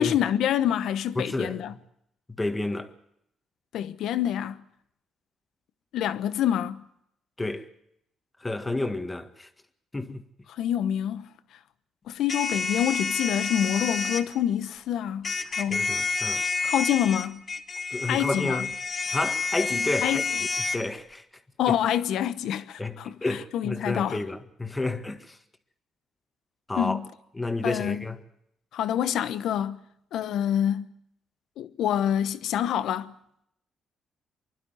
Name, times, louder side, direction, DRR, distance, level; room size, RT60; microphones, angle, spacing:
voice 1, 0.0-1.7 3.7-4.6 5.9-6.8 10.5-11.3 12.1-15.9 16.6-17.4 18.1-18.7 20.0-20.2 21.6-24.2 26.8-27.1 27.6-28.0 28.7-29.8 30.1-30.9 31.6-33.1, left 10 dB, 80° left, 1.0 m, -27 dB
voice 2, 1.1-1.6 2.4-2.9 7.4-7.6 8.4-9.5 9.9-10.2 15.7-16.4 17.9-18.7 19.1-20.2 20.7-21.2 21.7-21.8 22.8-25.4 26.7-27.0 27.3-28.2, left 2 dB, 15° left, 1.8 m, -30 dB
sound 1, 12.3-14.2 15.2-20.8, left 4 dB, 40° left, 1.9 m, -29 dB
25.5 x 12.0 x 9.5 m
cardioid pair, 90°, 0 cm